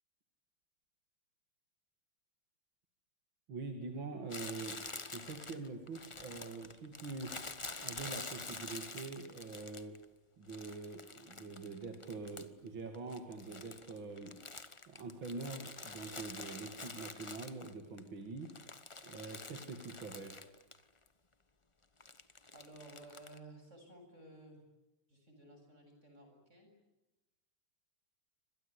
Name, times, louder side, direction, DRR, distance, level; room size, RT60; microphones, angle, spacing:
voice 1, 3.5-4.8 5.1-7.3 7.8-10.0 10.4-14.4 14.9-18.5 19.0-20.3, right 3 dB, 70° right, 4 dB, 3.1 m, -45 dB
Crumpling crinkling, 4.3-10.0 10.5-12.7 12.9-18.0 18.4-20.8 21.1-21.2 22.0-23.4, left 3 dB, 20° left, 0.8 m, -47 dB
voice 2, 22.5-24.6 25.1-26.7, right 2 dB, 35° right, 4 dB, 7.8 m, -55 dB
27.5 x 25.5 x 8.4 m, 0.96 s
omnidirectional pair, 2.3 m